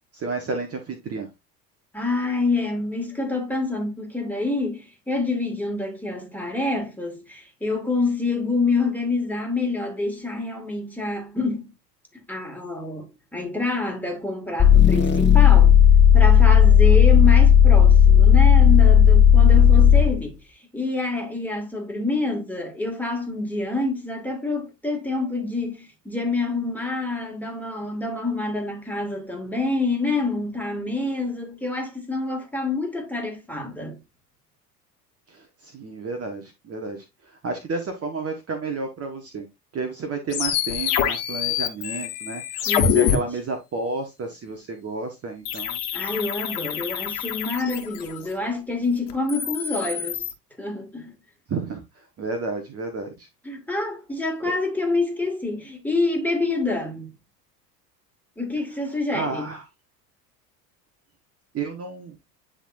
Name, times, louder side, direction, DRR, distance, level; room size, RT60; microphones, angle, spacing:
voice 1, 0.1-1.3 35.3-39.5 39.7-45.8 51.5-53.3 54.4-54.5 59.1-59.6 61.5-62.2, right 3 dB, 30° right, 1.4 m, -31 dB
voice 2, 1.9-11.7 12.3-13.1 13.3-15.8 16.1-20.4 20.7-34.0 42.7-43.2 45.9-50.3 50.6-51.1 53.4-57.1 58.4-59.5, left 3 dB, 5° left, 2.4 m, -27 dB
sound 1, 14.6-20.2, left 8 dB, 20° left, 1.4 m, -13 dB
sound 2, 40.3-43.2 45.5-48.3 49.1-50.3, left 9 dB, 65° left, 1.6 m, -26 dB
9.8 x 3.9 x 2.7 m
hypercardioid pair, 75°, 49 cm